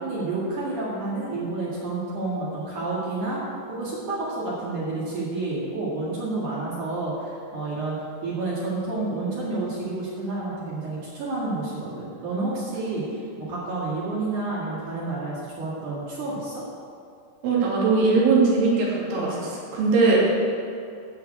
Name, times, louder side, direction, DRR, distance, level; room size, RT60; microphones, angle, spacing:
voice 1, 0.0-3.4 3.7-8.0 8.2-16.6, right 2 dB, 50° right, -7 dB, 2.9 m, -29 dB
voice 2, 17.4-20.2, right 4 dB, 80° right, -5 dB, 4.9 m, -20 dB
13.5 x 5.7 x 7.9 m, 2.5 s
omnidirectional pair, 5.4 m